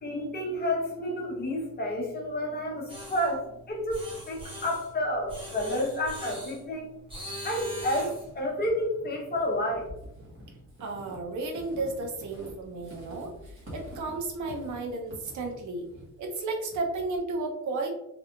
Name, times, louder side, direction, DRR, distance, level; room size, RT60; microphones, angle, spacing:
voice 1, 0.0-6.9 7.4-9.9, left 1 dB, 30° left, -1 dB, 0.9 m, -30 dB
sound 1, 2.9-3.3 3.9-4.9 5.3-6.6 7.1-8.3, equal, 15° right, 1.2 m, -41 dB
Walk footsteps / Squeak, 7.6-17.2, equal, 40° right, 1.3 m, -48 dB
voice 2, 10.8-15.8 16.2-17.9, right 3 dB, 70° right, 2 dB, 0.8 m, -33 dB
3.4 x 3.2 x 2.5 m, 0.87 s
cardioid pair, 145°, 31 cm